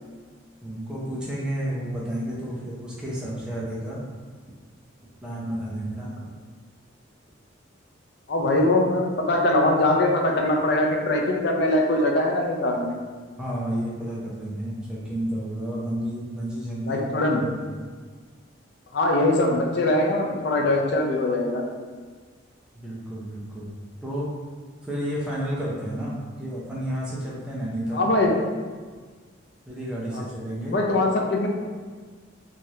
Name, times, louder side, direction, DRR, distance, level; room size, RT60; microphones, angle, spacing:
voice 1, 0.6-4.0 5.2-6.3 8.4-8.6 13.4-17.0 17.6-17.8 22.7-23.7 24.0-24.3 24.8-28.1 29.7-30.8, right 1 dB, 5° right, -7 dB, 0.5 m, -31 dB
voice 2, 8.3-13.0 16.8-17.4 18.9-21.6 27.9-28.3 30.1-30.2 30.7-31.5, left 2 dB, 55° left, 0 dB, 0.4 m, -22 dB
3.1 x 2.4 x 2.7 m, 1.5 s
head